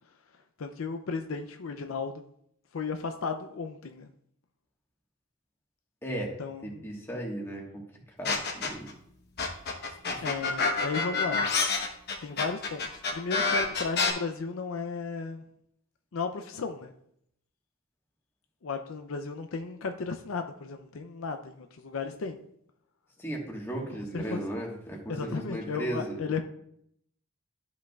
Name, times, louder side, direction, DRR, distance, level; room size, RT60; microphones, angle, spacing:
voice 1, 0.6-2.1 2.7-4.1 6.4-6.8 10.2-11.4 12.2-12.9 13.1-15.4 16.1-16.9 18.6-22.4 24.1-24.4 25.1-26.4, left 4 dB, 70° left, 7 dB, 0.5 m, -34 dB
voice 2, 6.0-6.4 6.6-7.8 8.2-8.9 9.8-10.2 23.2-26.3, right 1 dB, 10° left, -1 dB, 1.4 m, -36 dB
sound 1, 8.2-8.9 9.4-14.1, left 4 dB, 50° left, 1.1 m, -27 dB
12.5 x 5.2 x 2.3 m, 0.72 s
head